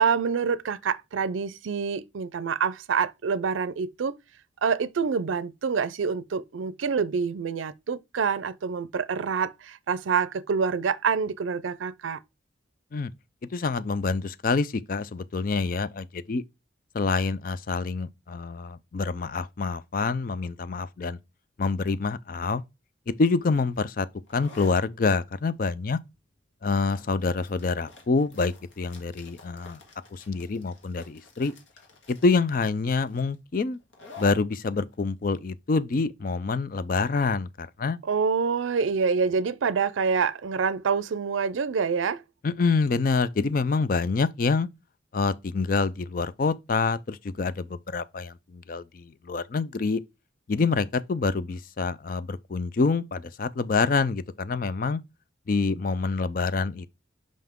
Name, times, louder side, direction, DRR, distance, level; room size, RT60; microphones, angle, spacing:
voice 1, 0.0-4.1 4.6-12.2 38.0-42.2, right 5 dB, 90° right, 0.4 m, -26 dB
voice 2, 13.5-16.4 16.9-21.2 21.6-22.6 23.1-24.1 24.3-26.0 26.6-29.8 30.1-31.5 32.1-33.8 34.2-38.0 42.4-44.7 45.1-50.0 50.5-55.0 55.5-56.9, left 4 dB, 45° left, 0.4 m, -26 dB
sound 1, 23.4-36.8, left 3 dB, 80° left, 1.7 m, -51 dB
5.6 x 5.2 x 3.6 m
head